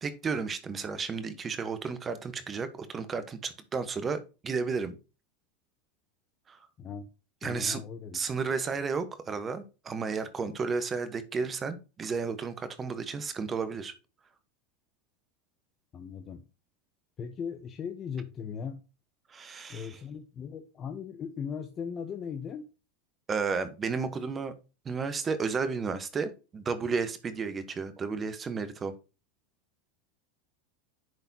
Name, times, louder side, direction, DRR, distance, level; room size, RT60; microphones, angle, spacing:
voice 1, 0.0-4.9 6.5-6.6 7.4-7.8 8.1-13.9 19.3-19.9 23.3-24.5 24.8-28.9, right 5 dB, 25° right, 1.0 m, -32 dB
voice 2, 7.4-8.2 15.9-16.4 17.2-18.8 19.7-22.7, left 7 dB, 35° left, 0.8 m, -38 dB
10.5 x 4.0 x 2.8 m
hypercardioid pair, 95°, 0 cm